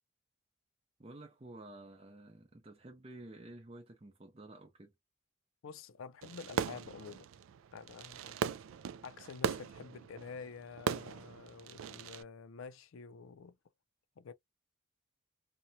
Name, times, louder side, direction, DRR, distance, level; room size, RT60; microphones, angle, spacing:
voice 1, 1.0-4.9, right 2 dB, 30° right, 0.5 m, -51 dB
voice 2, 5.6-7.3 7.7-8.4 9.0-13.6 14.2-14.3, left 5 dB, 80° left, 0.4 m, -49 dB
Fireworks, 6.2-12.2, right 7 dB, 80° right, 0.3 m, -39 dB
2.8 x 2.2 x 2.6 m
head